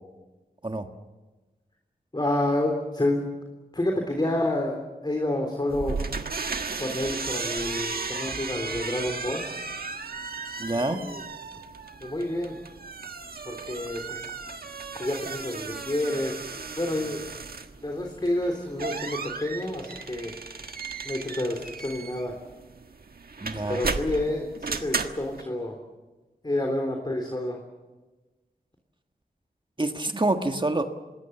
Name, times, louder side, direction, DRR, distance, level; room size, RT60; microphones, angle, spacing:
voice 1, 2.1-3.3 3.7-5.9 6.8-9.4 10.7-11.2 12.0-12.6 13.5-14.2 15.0-17.2 17.8-20.3 21.0-22.3 23.7-25.8 26.4-27.6, left 1 dB, 25° left, 2 dB, 3.5 m, -29 dB
sound 1, 5.7-25.4, right 4 dB, 70° right, 1.5 m, -35 dB
voice 2, 10.6-11.0 23.4-23.8 29.8-30.8, right 2 dB, 30° right, 5 dB, 1.7 m, -26 dB
26.5 x 20.5 x 7.3 m, 1.2 s
wide cardioid pair, 75°, 16 cm